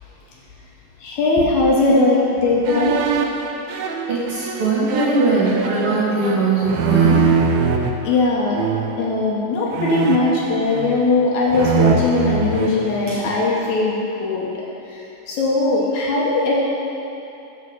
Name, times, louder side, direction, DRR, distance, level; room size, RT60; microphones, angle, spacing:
voice 1, 1.0-3.0 8.0-8.6 9.0-14.0 14.2-14.5 15.3-16.5, left 3 dB, 70° left, -4 dB, 2.0 m, -19 dB
sound 1, 2.7-7.9 8.6-9.1 9.7-11.2 11.5-13.5, right 6 dB, 85° right, 1.5 m, -22 dB
voice 2, 4.1-7.2 13.1-13.2, right 3 dB, 50° right, -9 dB, 2.0 m, -20 dB
6.6 x 6.4 x 6.5 m, 2.9 s
omnidirectional pair, 3.8 m